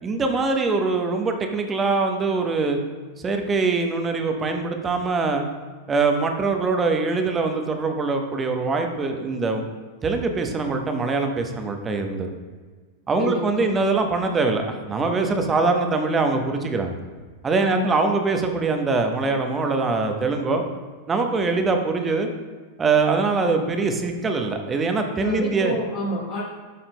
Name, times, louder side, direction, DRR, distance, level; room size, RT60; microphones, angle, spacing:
voice 1, 0.0-2.8 3.2-5.4 5.9-9.7 10.0-12.3 13.1-17.0 17.4-20.6 21.1-22.3 22.8-25.7, right 3 dB, 20° right, 4 dB, 0.9 m, -23 dB
voice 2, 13.2-13.7 17.6-17.9 25.2-26.4, left 1 dB, 50° left, -8 dB, 1.7 m, -29 dB
12.0 x 5.7 x 2.2 m, 1.4 s
figure-of-eight pair, 90°, 0 cm